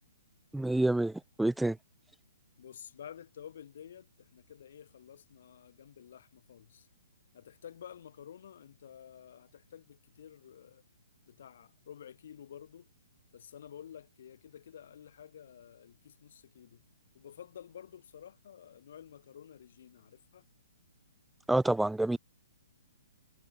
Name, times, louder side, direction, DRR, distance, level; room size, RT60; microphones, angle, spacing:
voice 1, 0.5-1.8 21.5-22.2, right 2 dB, 5° right, 0.5 m, -28 dB
voice 2, 2.6-6.9 7.3-10.8 11.3-12.9 13.3-16.8 17.1-20.4, left 9 dB, 55° left, 3.6 m, -51 dB
figure-of-eight pair, 125°, 0 cm